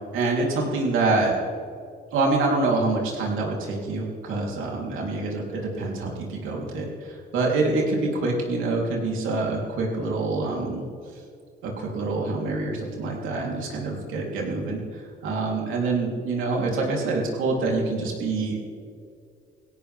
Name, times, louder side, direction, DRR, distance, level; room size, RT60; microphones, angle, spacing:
voice 1, 0.1-1.4 2.1-10.8 11.6-18.6, right 3 dB, 90° right, -2 dB, 3.5 m, -26 dB
21.0 x 16.5 x 3.6 m, 2.3 s
cardioid pair, 90°, 20 cm